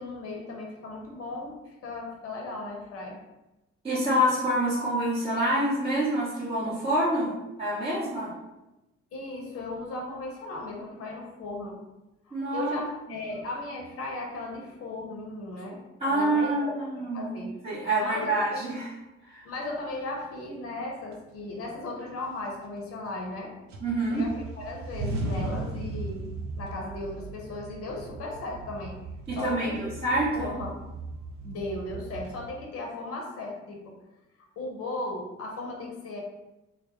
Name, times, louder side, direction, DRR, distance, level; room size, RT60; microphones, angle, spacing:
voice 1, 0.0-3.2 9.1-11.8 12.3-17.5 18.0-18.6 19.4-23.5 24.1-26.3 26.6-28.9 29.4-29.9 30.3-30.7 31.4-34.0 34.6-36.2, left 2 dB, 40° left, -1 dB, 0.7 m, -36 dB
voice 2, 3.8-8.3 12.3-12.8 13.1-13.2 16.0-17.4 17.6-18.9 19.3-19.4 23.8-24.2 29.3-29.7 30.0-30.5, right 1 dB, 15° right, -9 dB, 0.8 m, -27 dB
sound 1, 20.5-20.6 21.1-21.8 22.2-23.4 23.7-32.4, right 2 dB, 50° right, 0.5 m, -37 dB
2.2 x 2.0 x 2.9 m, 0.98 s
hypercardioid pair, 50°, 35 cm